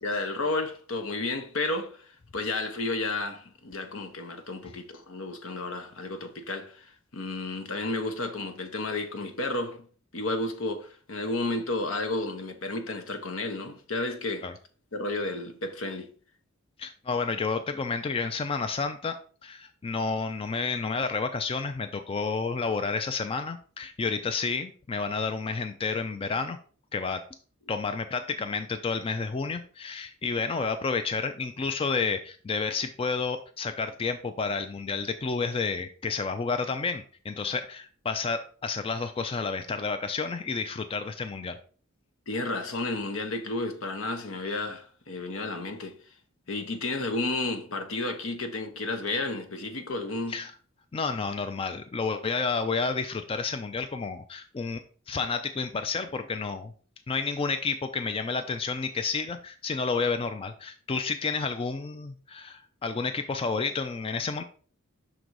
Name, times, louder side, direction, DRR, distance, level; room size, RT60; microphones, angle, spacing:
voice 1, 0.0-2.1 2.3-9.9 10.1-14.5 14.9-16.1 42.3-46.0 46.5-50.4, left 2 dB, 75° left, 1.0 m, -32 dB
voice 2, 16.8-26.6 26.9-27.2 27.7-41.6 50.3-50.5 50.9-54.8 55.1-56.7 57.1-64.4, left 4 dB, 25° left, 0.4 m, -30 dB
6.0 x 3.9 x 4.6 m
head